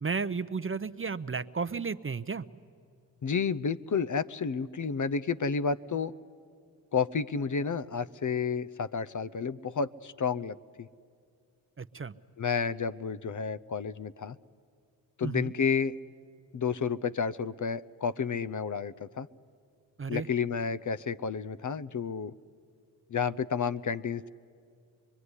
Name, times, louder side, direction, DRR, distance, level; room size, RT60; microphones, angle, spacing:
voice 1, 0.0-2.5 11.8-12.1 15.2-15.5 20.0-20.3, right 5 dB, 25° right, 13 dB, 0.8 m, -33 dB
voice 2, 3.2-6.1 6.9-10.9 12.4-14.4 15.2-16.0 16.5-19.3 20.1-22.3 23.1-24.3, left 6 dB, 40° left, 13 dB, 0.7 m, -31 dB
25.0 x 22.5 x 9.8 m, 2.2 s
supercardioid pair, 45°, 47 cm